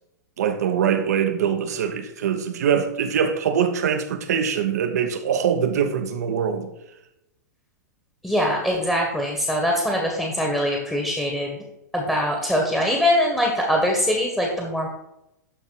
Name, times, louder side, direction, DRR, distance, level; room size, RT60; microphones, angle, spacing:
voice 1, 0.4-6.7, right 7 dB, 60° right, 1.1 m, -23 dB
voice 2, 8.2-11.6 11.9-14.9, equal, 5° left, 1.6 m, -22 dB
12.0 x 4.1 x 4.1 m
figure-of-eight pair, 100°, 10 cm